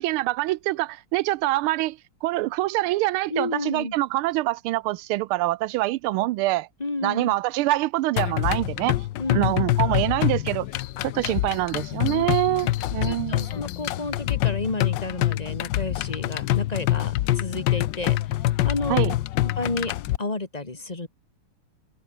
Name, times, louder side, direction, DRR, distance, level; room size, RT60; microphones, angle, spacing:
voice 1, 0.0-6.7 7.0-9.0 9.3-10.7 11.0-13.5 18.9-19.1, right 17 dB, 80° right, 1.4 m, -25 dB
voice 2, 3.3-3.9 6.8-7.3 9.2-9.6 12.1-12.2 13.1-18.2 18.6-19.0 19.6-19.9 20.2-21.1, left 3 dB, 20° left, 2.0 m, -31 dB
sound 1, 8.2-20.2, left 14 dB, 70° left, 1.2 m, -25 dB
omnidirectional pair, 2.4 m